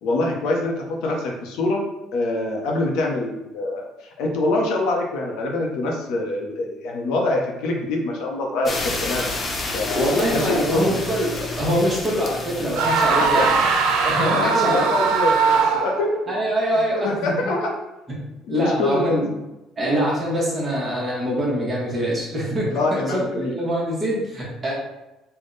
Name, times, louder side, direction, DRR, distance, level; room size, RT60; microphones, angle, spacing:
voice 1, 0.0-1.8 2.1-3.9 4.2-9.4 9.7-10.8 13.3-13.7 14.2-16.3 16.9-17.7 18.5-19.2 22.7-23.5, left 2 dB, 70° left, 0 dB, 0.7 m, -24 dB
sound 1, 8.7-14.3, left 2 dB, 25° left, 0.4 m, -31 dB
voice 2, 9.9-13.6 14.0-14.8 16.3-17.4 18.5-19.3 19.8-24.7, equal, 15° right, -5 dB, 1.0 m, -24 dB
sound 2, 12.7-16.1, right 5 dB, 90° right, 0.4 m, -20 dB
3.5 x 2.2 x 3.8 m, 0.98 s
cardioid pair, 165°, 0 cm